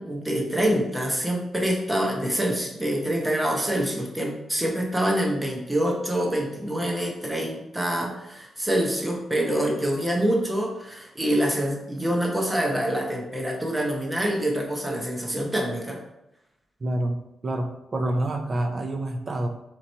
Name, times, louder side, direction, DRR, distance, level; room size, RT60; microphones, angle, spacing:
voice 1, 0.0-16.0, right 1 dB, 10° right, 0 dB, 0.8 m, -26 dB
voice 2, 16.8-19.5, right 1 dB, 30° right, 5 dB, 0.4 m, -27 dB
3.9 x 2.9 x 4.2 m, 0.87 s
wide cardioid pair, 160°, 0 cm